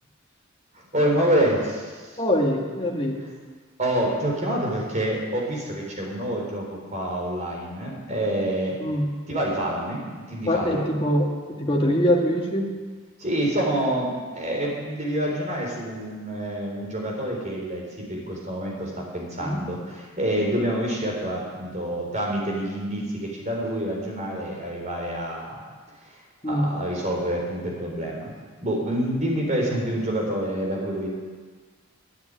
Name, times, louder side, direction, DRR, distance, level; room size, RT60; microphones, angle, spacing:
voice 1, 0.9-1.9 3.8-8.8 9.3-10.9 13.2-25.6 26.4-28.3 28.6-31.1, right 1 dB, 35° right, -1 dB, 3.8 m, -27 dB
voice 2, 2.2-3.2 8.8-9.1 10.5-11.3 11.6-12.7 19.4-19.6 26.4-26.7, equal, 25° left, -1 dB, 1.9 m, -23 dB
11.5 x 9.7 x 9.3 m, 1.5 s
head